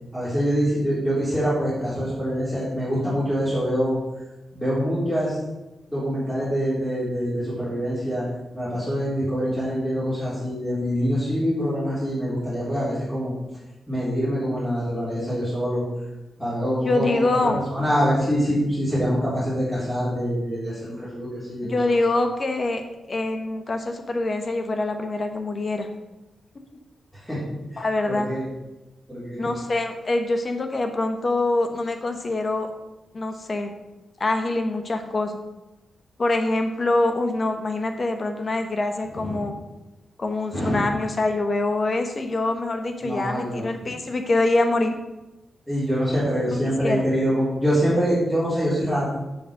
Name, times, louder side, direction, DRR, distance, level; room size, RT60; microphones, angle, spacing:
voice 1, 0.1-4.0 4.5-5.4 5.9-8.2 8.5-13.3 13.9-15.8 16.4-21.7 27.3-27.4 27.7-28.4 29.1-29.4 39.2-39.4 40.5-40.8 43.0-43.6 45.7-49.1, equal, 10° left, -12 dB, 3.5 m, -25 dB
voice 2, 16.8-17.6 21.6-22.8 23.1-25.9 27.8-28.3 29.4-32.7 33.1-33.7 34.2-35.4 36.2-39.5 40.2-44.9 46.8-47.1, left 2 dB, 35° left, 6 dB, 1.1 m, -24 dB
7.3 x 7.0 x 6.4 m, 1.0 s
wide cardioid pair, 160°, 0 cm